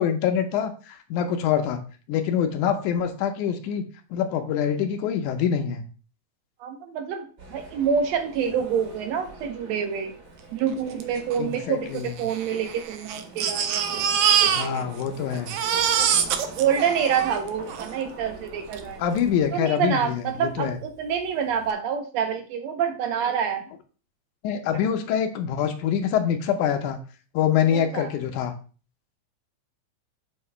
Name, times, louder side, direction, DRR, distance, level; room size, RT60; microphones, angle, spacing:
voice 1, 0.0-1.8 2.1-3.9 4.1-5.8 11.4-12.1 14.4-15.5 19.0-20.8 24.4-27.0 27.3-28.5, left 8 dB, 85° left, 6 dB, 2.3 m, -25 dB
voice 2, 6.6-10.1 10.5-14.8 16.0-16.1 16.6-19.0 19.5-23.6 27.7-28.1, right 7 dB, 70° right, 6 dB, 1.8 m, -27 dB
sound 1, 7.4-19.5, right 2 dB, 45° right, 1.1 m, -44 dB
Crying sobbing, 11.0-11.1 11.3-11.4 12.2-15.1 15.3-17.9 18.7-18.8 19.2-19.3, right 8 dB, 85° right, 1.3 m, -24 dB
6.9 x 2.9 x 5.5 m, 0.37 s
omnidirectional pair, 3.4 m